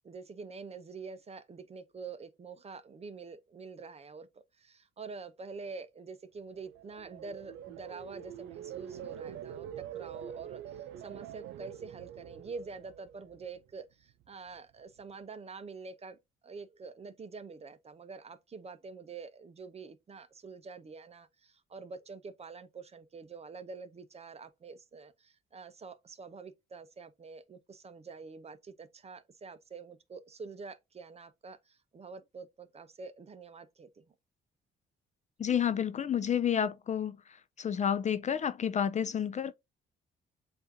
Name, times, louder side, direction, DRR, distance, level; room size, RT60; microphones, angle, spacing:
voice 1, 0.0-34.1, right 4 dB, 30° right, 0.7 m, -46 dB
sound 1, 6.5-13.7 14.1-14.5, right 10 dB, 90° right, 0.5 m, -45 dB
voice 2, 35.4-37.2 37.6-39.5, left 8 dB, 35° left, 0.4 m, -30 dB
7.7 x 2.6 x 2.7 m
cardioid pair, 90°, 20 cm